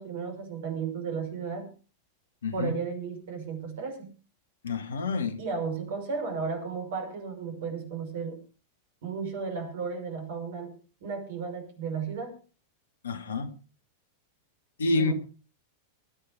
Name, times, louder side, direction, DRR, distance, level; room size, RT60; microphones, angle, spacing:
voice 1, 0.0-1.7 2.5-4.1 5.4-8.4 9.0-10.7 11.0-12.4 15.0-15.1, right 5 dB, 55° right, 5.7 m, -34 dB
voice 2, 2.4-2.7 4.6-5.4 13.0-13.5 14.8-15.1, left 3 dB, 65° left, 1.8 m, -28 dB
20.5 x 9.1 x 5.2 m
figure-of-eight pair, 90°, 0 cm